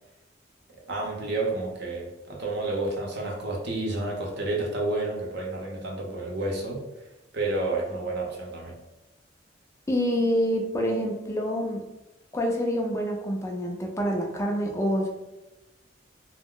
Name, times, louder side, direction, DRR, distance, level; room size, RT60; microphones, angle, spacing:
voice 1, 0.9-6.8 7.3-8.8, right 2 dB, 60° right, -1 dB, 0.7 m, -30 dB
voice 2, 9.9-11.8 12.3-15.1, equal, 15° left, 1 dB, 0.3 m, -26 dB
2.3 x 2.0 x 3.6 m, 0.99 s
head